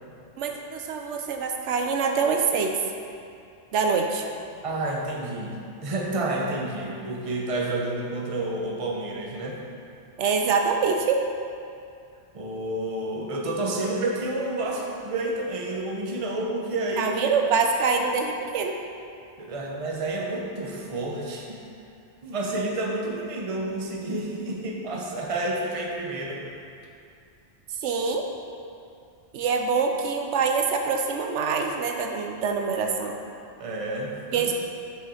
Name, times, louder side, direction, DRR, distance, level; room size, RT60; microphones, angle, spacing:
voice 1, 0.4-2.8 3.7-4.2 10.2-11.2 17.0-18.7 27.8-28.2 29.3-33.2 34.3-34.5, right 5 dB, 80° right, 3 dB, 0.9 m, -25 dB
voice 2, 4.6-9.6 12.3-17.1 17.9-18.0 19.4-21.6 22.2-26.4 33.6-34.5, right 2 dB, 30° right, -1 dB, 0.8 m, -30 dB
5.7 x 5.0 x 5.6 m, 2.5 s
omnidirectional pair, 1.2 m